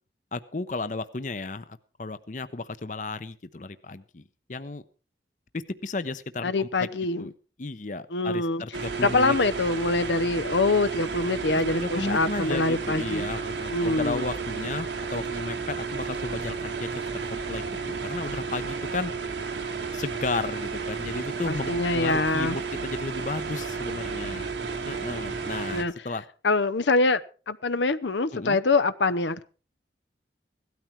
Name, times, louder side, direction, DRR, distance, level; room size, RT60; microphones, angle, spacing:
voice 1, 0.3-4.2 4.5-4.8 5.5-6.9 7.2-7.3 7.6-9.4 11.5-19.1 19.9-24.5 24.8-26.2 28.3-28.6, left 3 dB, 45° left, 0.7 m, -34 dB
voice 2, 6.4-7.3 8.1-8.6 9.0-13.3 13.7-14.2 21.5-22.6 25.7-25.9 26.4-27.2 27.5-29.4, left 3 dB, 90° left, 0.8 m, -24 dB
sound 1, 8.7-25.8, right 5 dB, 85° right, 2.0 m, -32 dB
17.0 x 13.0 x 4.6 m
head